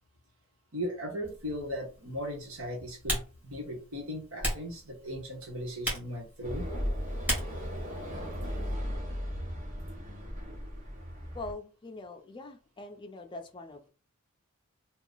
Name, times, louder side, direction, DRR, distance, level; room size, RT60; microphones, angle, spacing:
voice 1, 0.7-6.7, equal, 70° right, 1 dB, 1.3 m, -37 dB
Typing, 1.2-8.7, equal, 5° right, 1.3 m, -39 dB
sound 1, 6.4-11.5, equal, 35° right, 0.9 m, -36 dB
voice 2, 11.3-13.9, left 2 dB, 20° left, 4 dB, 0.5 m, -43 dB
2.8 x 2.4 x 3.8 m, 0.35 s
head